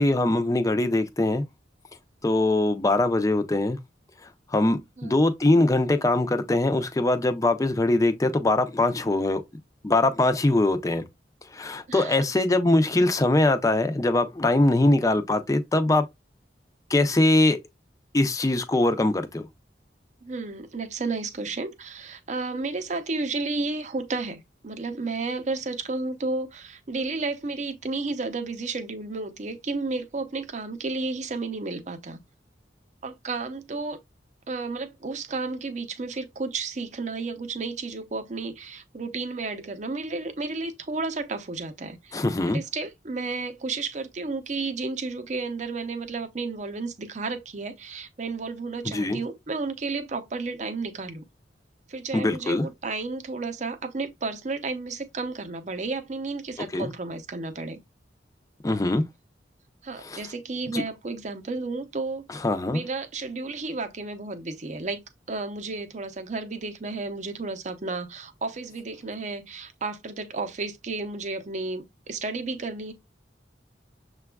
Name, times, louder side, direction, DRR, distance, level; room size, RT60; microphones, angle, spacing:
voice 1, 0.0-1.4 2.2-3.8 4.5-9.4 9.8-11.0 11.5-16.0 16.9-17.6 18.1-19.5 42.1-42.6 48.8-49.2 52.1-52.7 56.7-56.9 58.6-59.0 60.0-60.2 60.7-60.8 62.4-62.8, left 2 dB, 20° left, 0.4 m, -22 dB
voice 2, 11.9-12.3 20.2-32.2 33.0-34.0 34.5-42.2 42.5-51.2 51.9-57.8 59.8-62.3 62.7-65.0 65.3-72.9, right 3 dB, 40° right, 0.6 m, -32 dB
6.7 x 2.3 x 2.2 m
head